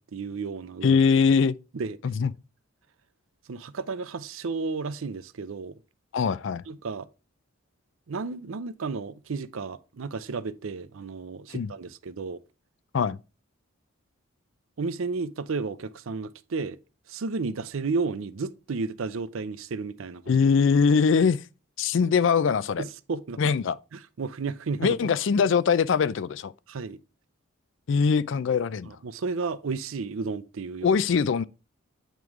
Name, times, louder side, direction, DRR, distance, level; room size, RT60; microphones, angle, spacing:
voice 1, 0.0-1.0 1.7-2.0 3.5-5.8 6.7-7.1 8.1-12.4 14.8-16.8 17.1-20.2 22.8-23.4 23.9-25.1 26.7-27.0 28.8-31.0, right 4 dB, 70° right, 0.5 m, -32 dB
voice 2, 0.8-1.5 2.0-2.3 6.1-6.6 11.5-11.7 12.9-13.2 20.3-21.4 21.8-22.8 23.4-23.8 24.8-26.5 27.9-28.9 30.8-31.4, left 6 dB, 60° left, 0.3 m, -22 dB
9.0 x 3.1 x 4.7 m
head